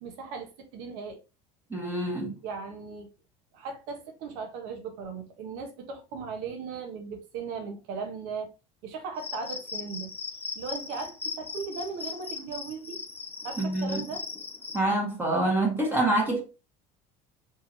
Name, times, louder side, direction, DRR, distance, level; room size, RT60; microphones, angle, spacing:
voice 1, 0.0-1.2 2.4-3.1 3.5-8.5 8.8-10.1 10.5-13.0 13.4-14.3, right 5 dB, 75° right, 1.3 m, -37 dB
voice 2, 1.7-2.4 13.6-14.0 14.7-16.4, right 2 dB, 15° right, 1.7 m, -26 dB
Cricket, 9.2-14.8, left 4 dB, 15° left, 0.7 m, -38 dB
4.9 x 3.5 x 2.9 m
cardioid pair, 130°, 16 cm